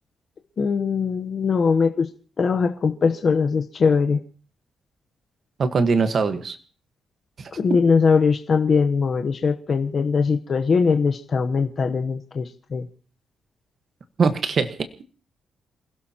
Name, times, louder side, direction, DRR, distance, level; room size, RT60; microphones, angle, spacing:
voice 1, 0.6-2.1 2.4-4.2 7.6-12.9, left 5 dB, 40° left, 5 dB, 0.9 m, -21 dB
voice 2, 5.6-6.6 7.4-7.5 14.2-14.7, right 4 dB, 40° right, 8 dB, 1.4 m, -21 dB
28.5 x 16.5 x 2.9 m, 0.39 s
wide cardioid pair, 160°, 0 cm